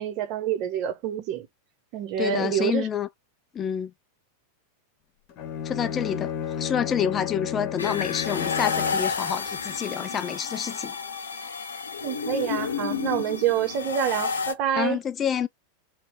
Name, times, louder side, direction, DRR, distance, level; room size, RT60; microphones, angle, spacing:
voice 1, 0.0-1.5 1.9-2.9 12.0-15.0, right 9 dB, 40° right, 0.9 m, -27 dB
voice 2, 2.2-3.1 3.5-3.9 5.6-11.0 14.8-15.5, left 8 dB, 25° left, 0.4 m, -28 dB
Bowed string instrument, 5.3-9.2, left 8 dB, 40° left, 1.0 m, -32 dB
sound 1, 7.8-14.5, left 5 dB, 70° left, 0.8 m, -30 dB
3.2 x 2.9 x 4.4 m
figure-of-eight pair, 90°, 0 cm